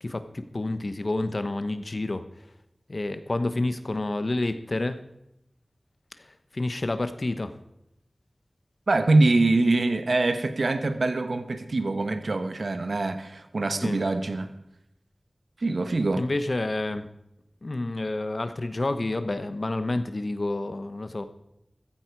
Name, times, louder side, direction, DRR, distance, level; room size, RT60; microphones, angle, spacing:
voice 1, 0.0-2.2 2.9-5.0 6.5-7.5 13.8-14.0 16.2-17.1 17.6-21.2, left 2 dB, 55° left, 10 dB, 1.1 m, -29 dB
voice 2, 8.9-14.5 15.6-16.2, right 2 dB, 80° right, 9 dB, 1.1 m, -24 dB
15.0 x 15.0 x 4.7 m, 0.80 s
wide cardioid pair, 70°, 0 cm